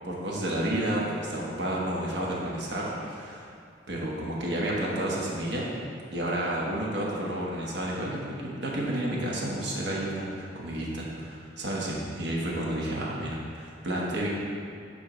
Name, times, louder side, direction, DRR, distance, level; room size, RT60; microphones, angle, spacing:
voice 1, 0.0-3.5 3.9-5.8 6.1-14.3, right 1 dB, 70° right, -4 dB, 1.2 m, -31 dB
11.5 x 3.9 x 3.1 m, 2.4 s
head